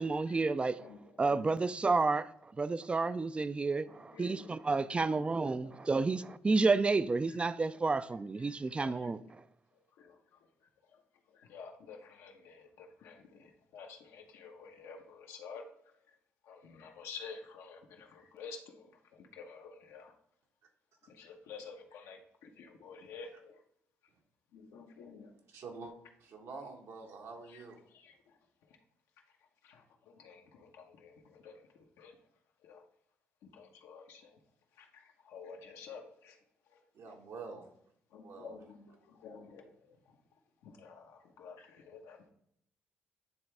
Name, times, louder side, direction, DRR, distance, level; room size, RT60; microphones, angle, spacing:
voice 1, 0.0-0.8 1.2-2.3 2.6-9.2, right 3 dB, 25° right, 0.3 m, -30 dB
voice 2, 0.8-1.5 4.1-5.9 7.3-7.4 8.7-9.1 10.0-10.2 10.9-11.0 11.3-15.7 16.4-20.1 21.1-23.6 24.5-25.3 27.4-28.3 29.6-32.1 32.6-32.8 33.5-34.4 34.8-36.4 36.7-37.2 38.1-40.0 40.6-42.2, left 5 dB, 90° left, 1.0 m, -51 dB
voice 3, 25.5-25.9 26.2-27.8 36.9-37.7 38.2-38.6, right 4 dB, 75° right, 1.3 m, -46 dB
9.5 x 3.4 x 3.3 m
cardioid pair, 80°, 5 cm